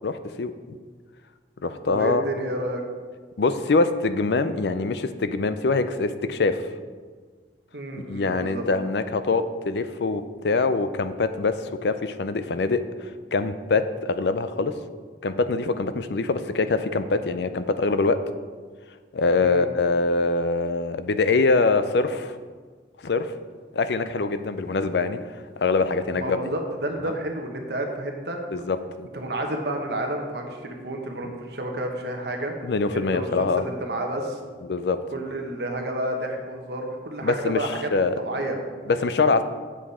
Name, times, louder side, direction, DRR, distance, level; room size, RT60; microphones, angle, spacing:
voice 1, 0.0-0.8 1.6-2.2 3.4-6.6 8.1-11.6 11.8-14.8 15.2-18.2 19.1-22.4 23.0-23.3 23.7-25.2 25.6-26.4 28.5-29.1 32.6-33.6 34.7-35.0 37.2-38.2 38.9-39.4, left 3 dB, 75° left, 11 dB, 0.5 m, -24 dB
voice 2, 1.6-2.8 7.7-8.6 19.4-19.7 26.1-28.4 29.1-32.5 32.9-34.4 35.1-37.9 38.2-38.9, right 1 dB, 65° right, 2 dB, 1.2 m, -30 dB
8.0 x 7.3 x 4.2 m, 1.5 s
head